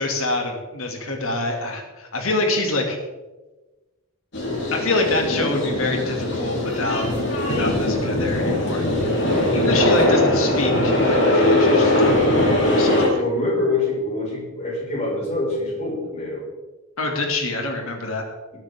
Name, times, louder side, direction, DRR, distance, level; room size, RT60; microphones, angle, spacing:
voice 1, 0.0-3.0 4.7-7.1 7.5-8.8 9.5-12.2 12.6-13.1 17.0-18.3, left 2 dB, 70° left, 2 dB, 2.6 m, -26 dB
sound 1, 4.3-13.1, left 1 dB, 50° left, 4.3 m, -20 dB
voice 2, 9.2-9.6 12.6-16.5, left 2 dB, 30° left, -4 dB, 5.6 m, -26 dB
20.0 x 9.4 x 3.8 m, 1.1 s
head